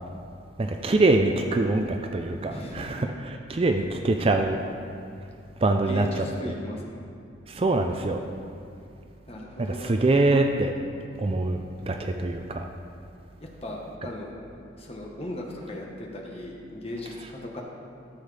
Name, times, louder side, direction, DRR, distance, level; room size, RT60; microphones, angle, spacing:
voice 1, 0.6-4.6 5.6-6.2 7.5-8.2 9.6-10.7 11.2-11.6 11.9-12.7 14.0-14.1, right 2 dB, 30° right, 4 dB, 0.4 m, -24 dB
voice 2, 2.5-3.0 5.9-6.8 9.3-10.1 13.4-14.3 14.8-17.6, left 1 dB, 30° left, -1 dB, 1.1 m, -37 dB
13.0 x 7.2 x 3.3 m, 2.5 s
head